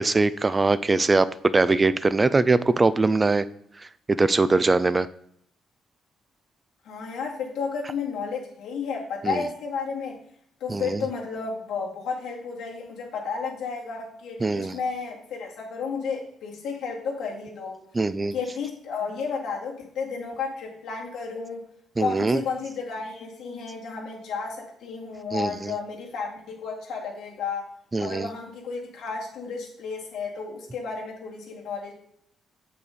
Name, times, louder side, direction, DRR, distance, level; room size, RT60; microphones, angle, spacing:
voice 1, 0.0-3.5 4.1-5.1 9.2-9.4 10.7-11.0 14.4-14.8 17.9-18.3 22.0-22.4 25.3-25.7 27.9-28.3, right 3 dB, 25° right, 15 dB, 0.4 m, -22 dB
voice 2, 6.8-10.2 10.6-17.8 18.3-21.6 22.0-27.7 28.0-31.9, left 5 dB, 80° left, -2 dB, 2.1 m, -32 dB
7.1 x 5.5 x 4.1 m, 0.69 s
cardioid pair, 90°, 0 cm